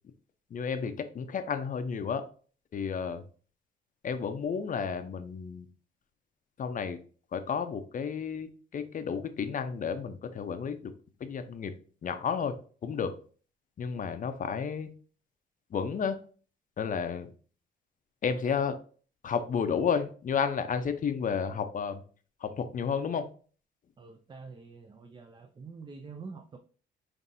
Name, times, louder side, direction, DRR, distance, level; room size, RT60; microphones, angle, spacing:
voice 1, 0.5-2.3 2.7-3.2 4.0-5.7 6.6-7.0 7.3-10.9 11.2-11.7 12.0-12.6 12.8-13.1 13.8-14.9 15.7-16.2 16.8-17.3 18.2-18.8 19.2-22.0 22.4-23.3, left 6 dB, 40° left, 9 dB, 0.5 m, -32 dB
voice 2, 24.0-26.6, right 4 dB, 25° right, 7 dB, 0.4 m, -46 dB
5.4 x 2.6 x 2.6 m, 0.41 s
cardioid pair, 90°, 20 cm